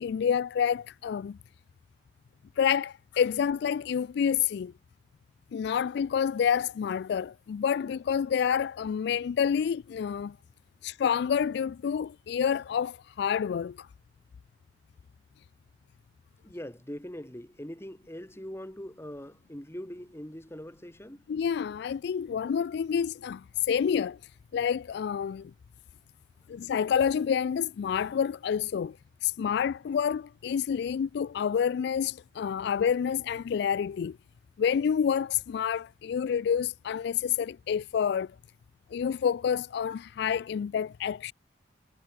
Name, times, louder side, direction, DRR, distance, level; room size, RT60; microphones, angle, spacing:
voice 1, 0.0-1.4 2.6-4.7 5.5-10.4 10.8-13.9 21.3-24.2 24.5-25.5 26.5-29.0 29.2-34.2 34.6-38.3 38.9-41.3, left 7 dB, 65° left, 0.3 m, -28 dB
voice 2, 16.4-21.3, equal, 15° left, 3.1 m, -42 dB
head